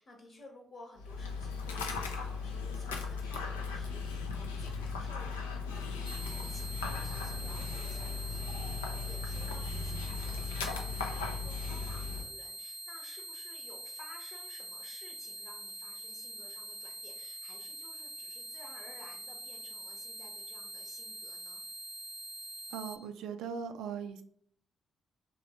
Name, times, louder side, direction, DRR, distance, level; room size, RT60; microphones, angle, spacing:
voice 1, 0.0-21.6, left 2 dB, 55° left, -1 dB, 0.8 m, -55 dB
Dog, 1.0-12.2, left 4 dB, 85° left, 0.4 m, -37 dB
sound 1, 6.0-23.0, right 1 dB, 10° left, 1.0 m, -44 dB
voice 2, 22.7-24.2, right 6 dB, 65° right, 7 dB, 0.3 m, -39 dB
3.0 x 3.0 x 2.9 m, 0.64 s
figure-of-eight pair, 40°, 0 cm